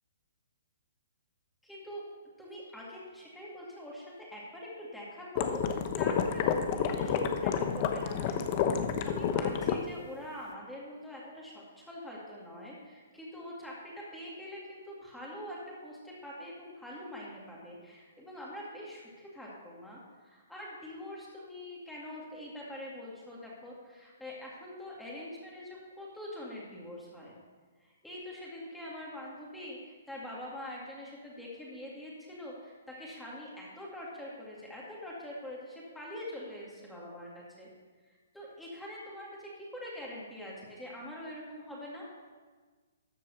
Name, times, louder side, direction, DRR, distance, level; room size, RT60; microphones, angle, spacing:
voice 1, 1.6-2.0 2.4-8.7 9.1-27.3 27.8-37.7 38.3-42.1, left 1 dB, 5° left, -5 dB, 2.2 m, -44 dB
sound 1, 5.3-9.8, left 7 dB, 40° left, 0.9 m, -29 dB
13.5 x 4.6 x 6.8 m, 1.4 s
hypercardioid pair, 140°, 0 cm